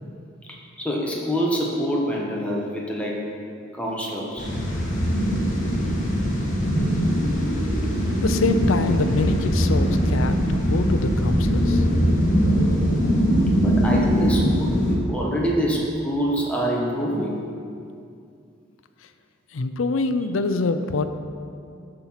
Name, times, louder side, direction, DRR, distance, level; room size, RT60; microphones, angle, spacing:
voice 1, 0.8-3.3 3.7-4.5 13.5-17.4 20.1-20.2, equal, 5° left, -3 dB, 1.3 m, -26 dB
sound 1, 4.4-14.9, equal, 40° left, 1.8 m, -21 dB
voice 2, 8.2-11.8 19.5-21.1, left 3 dB, 80° left, 10 dB, 0.5 m, -25 dB
12.5 x 4.5 x 5.7 m, 2.4 s
head